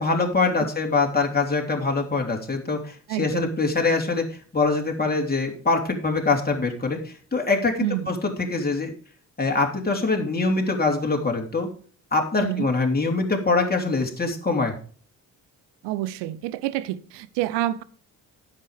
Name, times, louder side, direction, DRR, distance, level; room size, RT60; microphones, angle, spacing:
voice 1, 0.0-4.3 4.5-8.9 9.4-11.7 12.1-14.7, left 3 dB, 20° left, 3.2 m, -24 dB
voice 2, 3.1-3.6 7.8-8.1 12.4-12.7 15.8-17.8, right 14 dB, 75° right, 0.8 m, -28 dB
10.0 x 7.6 x 5.0 m
hypercardioid pair, 45°, 42 cm